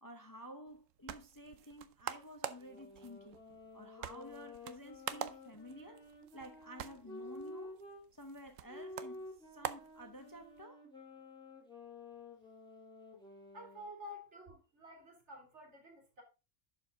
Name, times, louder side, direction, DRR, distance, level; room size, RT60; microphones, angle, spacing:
voice 1, 0.0-3.4 3.7-6.1 6.3-7.8 8.1-10.8, equal, 20° left, 0.8 m, -52 dB
sound 1, 0.7-10.6, right 10 dB, 85° right, 1.1 m, -47 dB
sound 2, 2.6-8.1 8.7-13.9, left 2 dB, 5° left, 2.8 m, -52 dB
voice 2, 13.5-16.2, left 1 dB, 60° right, 3.1 m, -51 dB
11.5 x 5.1 x 3.8 m
omnidirectional pair, 1.3 m